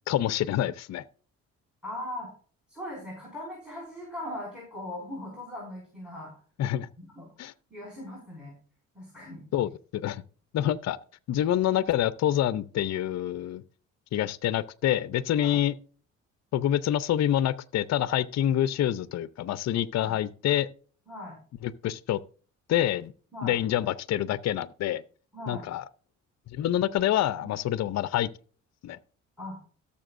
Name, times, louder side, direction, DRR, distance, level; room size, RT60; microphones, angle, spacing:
voice 1, 0.1-1.0 6.6-6.9 7.4-7.5 9.5-10.2 10.5-11.0 11.3-13.6 14.1-15.7 16.5-20.7 21.6-22.2 22.7-23.1 23.4-25.0 25.5-25.8 26.5-28.3 28.8-29.0, left 12 dB, 60° left, 0.6 m, -27 dB
voice 2, 1.8-2.3 2.7-6.3 7.0-7.3 7.7-8.5 8.9-9.4 15.4-15.6 19.9-20.2 21.1-21.4 23.3-23.6 25.3-25.7 29.4-29.6, left 1 dB, 5° right, 5.3 m, -39 dB
17.5 x 6.9 x 2.6 m
cardioid pair, 85°, 30 cm